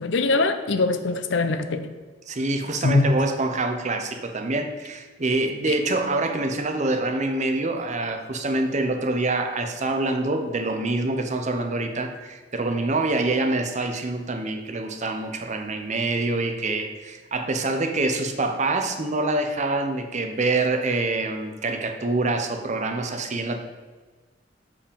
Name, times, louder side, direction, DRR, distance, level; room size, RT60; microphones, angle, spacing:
voice 1, 0.0-1.9 2.8-3.2, left 3 dB, 65° left, 9 dB, 0.6 m, -22 dB
voice 2, 2.3-23.6, right 2 dB, 40° right, 5 dB, 0.7 m, -26 dB
6.9 x 5.0 x 5.3 m, 1.3 s
head